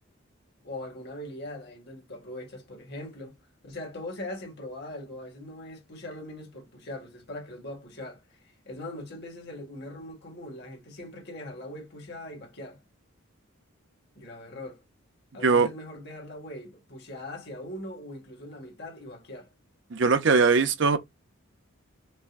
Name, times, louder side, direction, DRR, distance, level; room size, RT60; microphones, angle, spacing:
voice 1, 0.6-3.4 3.6-8.4 8.7-12.8 14.2-14.8 15.3-19.5, left 1 dB, 55° left, 1.8 m, -41 dB
voice 2, 19.9-21.0, right 4 dB, 60° right, 0.6 m, -21 dB
5.4 x 2.2 x 2.5 m
head